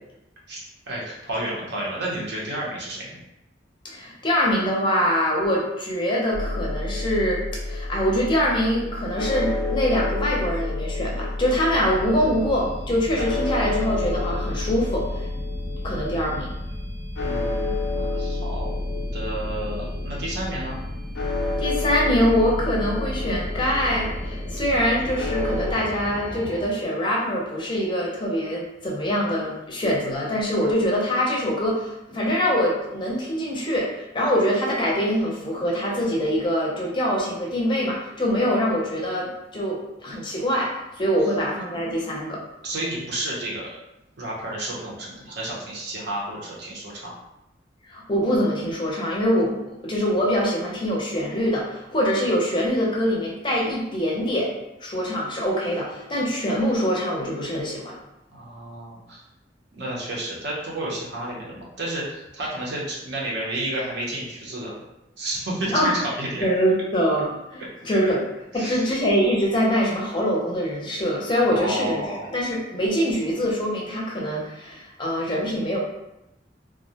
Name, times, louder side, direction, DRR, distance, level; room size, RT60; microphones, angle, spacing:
voice 1, 0.5-3.2 17.2-18.8 19.1-20.8 42.6-43.7 44.2-47.1 58.3-59.2 59.7-64.8 65.2-66.5 68.5-68.9 71.5-72.3, right 1 dB, 65° right, -4 dB, 0.7 m, -31 dB
voice 2, 3.8-15.3 15.8-16.5 21.6-42.4 47.9-54.5 54.8-57.9 65.7-65.9 66.4-68.2 68.5-72.0 72.3-75.8, equal, 25° left, -3 dB, 0.5 m, -24 dB
sound 1, 6.3-25.7, left 2 dB, 80° left, 0.4 m, -29 dB
sound 2, 11.7-26.7, equal, 30° right, 0.6 m, -38 dB
2.3 x 2.0 x 2.7 m, 0.89 s
head